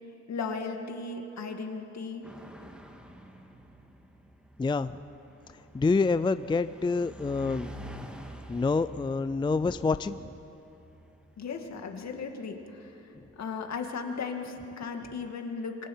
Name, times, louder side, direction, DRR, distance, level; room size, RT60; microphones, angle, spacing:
voice 1, 0.3-2.3 11.4-12.9 13.4-15.9, left 4 dB, 65° left, 3 dB, 2.3 m, -36 dB
sound 1, 2.2-13.2, right 1 dB, 5° right, 2.0 m, -48 dB
voice 2, 4.6-5.0 5.7-7.7 8.5-10.3, left 4 dB, 15° left, 13 dB, 0.4 m, -27 dB
27.0 x 24.5 x 5.7 m, 3.0 s
cardioid pair, 100°, 29 cm